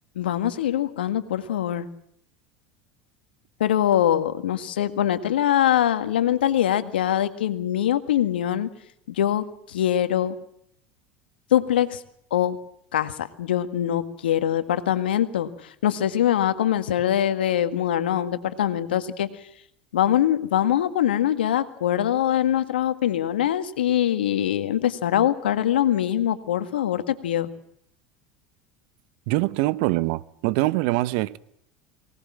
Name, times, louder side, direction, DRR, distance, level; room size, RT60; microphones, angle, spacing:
voice 1, 0.2-1.9 3.6-8.7 9.1-10.4 11.5-12.0 12.3-12.6 12.9-19.3 19.9-27.5, left 11 dB, 80° left, 1.8 m, -23 dB
voice 2, 29.3-31.4, right 19 dB, 65° right, 1.0 m, -23 dB
24.0 x 18.5 x 7.5 m
hypercardioid pair, 80°, 5 cm